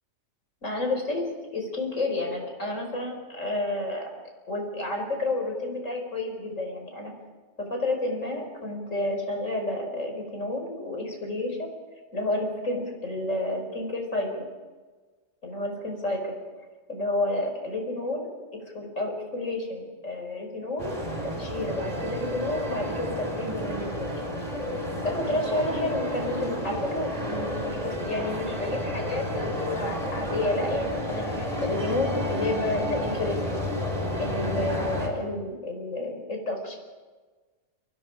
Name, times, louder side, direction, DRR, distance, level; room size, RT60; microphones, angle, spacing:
voice 1, 0.6-4.1 4.5-7.1 7.6-11.7 12.1-14.5 15.4-16.4 16.9-18.3 18.7-20.9 21.3-24.3 25.0-33.4 34.2-36.8, left 2 dB, 70° left, 3 dB, 5.7 m, -30 dB
sound 1, 20.8-35.1, equal, 30° right, 4.7 m, -31 dB
sound 2, 25.4-29.0, left 1 dB, 20° left, 6.2 m, -42 dB
29.5 x 26.0 x 5.0 m, 1.4 s
omnidirectional pair, 1.4 m